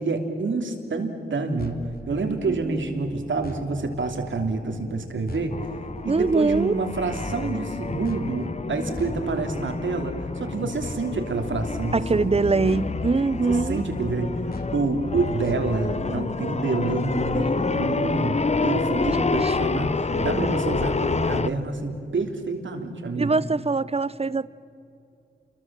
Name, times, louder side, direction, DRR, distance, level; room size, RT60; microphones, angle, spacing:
voice 1, 0.0-5.5 6.0-12.5 13.5-14.4 14.7-23.4, right 3 dB, 85° right, 4 dB, 2.9 m, -28 dB
sound 1, 1.6-16.4, left 2 dB, 50° left, 2.5 m, -41 dB
voice 2, 2.5-3.0 6.1-6.7 11.9-13.8 18.9-19.8 20.1-20.5 23.2-24.5, right 3 dB, 30° right, 18 dB, 0.7 m, -24 dB
sound 2, 5.5-21.5, left 4 dB, 35° left, 0.7 m, -28 dB
28.5 x 22.5 x 7.5 m, 2.6 s
wide cardioid pair, 80°, 19 cm